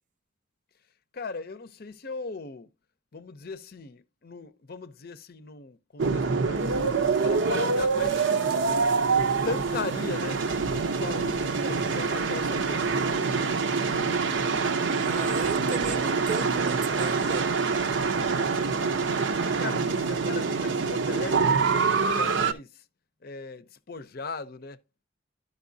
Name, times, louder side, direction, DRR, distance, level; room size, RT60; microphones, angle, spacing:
voice 1, 1.1-2.7 3.1-6.7 7.1-8.8 9.1-10.4 10.7-12.9 19.3-21.6 21.9-22.8 23.2-24.8, left 4 dB, 50° left, 0.6 m, -38 dB
sound 1, 6.0-22.5, right 4 dB, 70° right, 0.7 m, -25 dB
voice 2, 11.6-11.9 14.8-17.5, right 4 dB, 40° right, 0.4 m, -35 dB
11.5 x 5.3 x 2.6 m
head